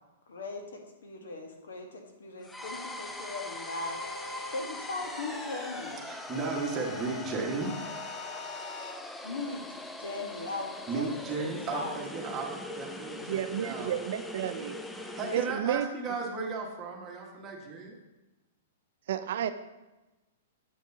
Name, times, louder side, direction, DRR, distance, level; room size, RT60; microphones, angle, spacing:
voice 1, 0.3-4.0 4.5-6.0 9.2-9.7 10.0-11.9, left 3 dB, 90° left, 3 dB, 1.3 m, -39 dB
sound 1, 2.4-15.6, left 2 dB, 5° left, 0.4 m, -41 dB
sound 2, 3.8-4.6 5.0-5.9 6.3-7.2 7.6-8.9, left 3 dB, 65° left, 1.1 m, -44 dB
voice 2, 6.0-7.7 10.9-13.9 15.0-17.9, right 4 dB, 20° right, -2 dB, 1.4 m, -35 dB
voice 3, 13.3-14.8 15.3-15.9 19.1-19.5, right 9 dB, 65° right, 11 dB, 0.5 m, -31 dB
7.8 x 6.3 x 2.8 m, 1.1 s
hypercardioid pair, 140°, 0 cm